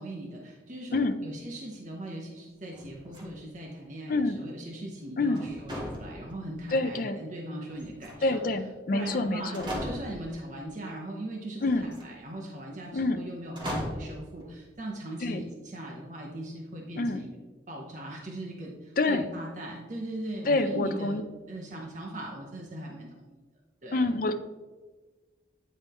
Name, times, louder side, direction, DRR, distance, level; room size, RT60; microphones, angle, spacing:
voice 1, 0.0-8.4 8.9-17.3 17.7-21.2 21.5-23.4 23.8-24.0, right 1 dB, 45° right, -1 dB, 0.8 m, -39 dB
sound 1, 2.7-3.6 5.3-6.6 7.7-8.5 9.1-9.2 9.5-10.4 11.6-12.1 13.5-14.2, equal, 25° right, 1.4 m, -37 dB
voice 2, 4.1-4.4 5.2-5.4 6.7-7.2 8.2-9.7 11.6-11.9 12.9-13.2 15.2-15.4 17.0-17.2 19.0-19.3 20.4-21.2 23.9-24.4, left 2 dB, 50° left, 9 dB, 0.4 m, -27 dB
9.6 x 4.3 x 3.5 m, 1.3 s
head